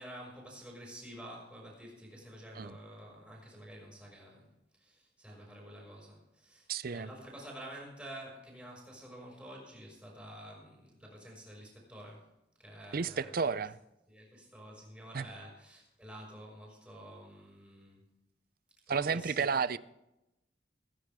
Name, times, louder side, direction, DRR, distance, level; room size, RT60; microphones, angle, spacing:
voice 1, 0.0-12.3 12.6-13.5 14.1-18.1 18.9-19.6, right 1 dB, 5° right, 6.0 m, -49 dB
voice 2, 6.7-7.1 12.9-13.8 15.1-15.2 18.9-19.8, right 5 dB, 55° right, 0.5 m, -32 dB
21.5 x 10.5 x 3.6 m
head